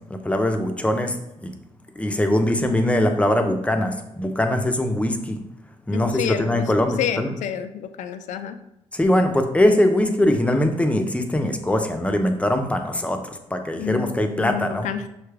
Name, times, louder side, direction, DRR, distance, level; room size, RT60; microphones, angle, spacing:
voice 1, 0.1-1.5 2.0-5.4 5.9-7.3 8.9-13.2 13.5-14.9, left 1 dB, 10° left, 5 dB, 0.6 m, -22 dB
voice 2, 5.9-6.7 7.0-8.6 13.8-15.1, left 8 dB, 80° left, 10 dB, 0.4 m, -29 dB
5.7 x 2.3 x 3.3 m, 0.85 s
cardioid pair, 75°, 12 cm